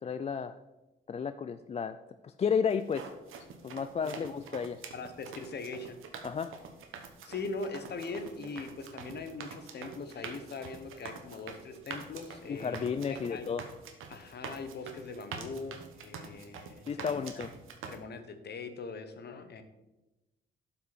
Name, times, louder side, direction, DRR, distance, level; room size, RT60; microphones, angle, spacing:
voice 1, 0.0-0.6 1.1-2.0 2.2-3.1 3.6-4.8 6.2-6.5 12.5-13.6 16.9-17.5, left 6 dB, 30° left, 11 dB, 0.3 m, -32 dB
sound 1, 2.7-18.0, right 5 dB, 90° right, 1.2 m, -46 dB
voice 2, 4.9-6.0 7.2-13.5 14.1-17.3 17.9-19.6, left 3 dB, 55° left, 8 dB, 1.1 m, -41 dB
12.0 x 5.6 x 4.2 m, 1.0 s
cardioid pair, 110°, 20 cm